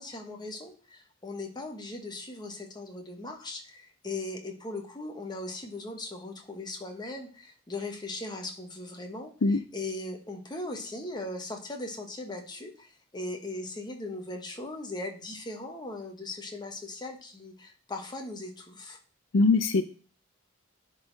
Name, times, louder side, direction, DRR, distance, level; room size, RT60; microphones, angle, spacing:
voice 1, 0.0-19.0, left 2 dB, 20° left, 2 dB, 1.3 m, -39 dB
voice 2, 19.3-19.8, left 3 dB, 70° left, 10 dB, 0.5 m, -21 dB
10.5 x 4.1 x 4.0 m, 0.40 s
head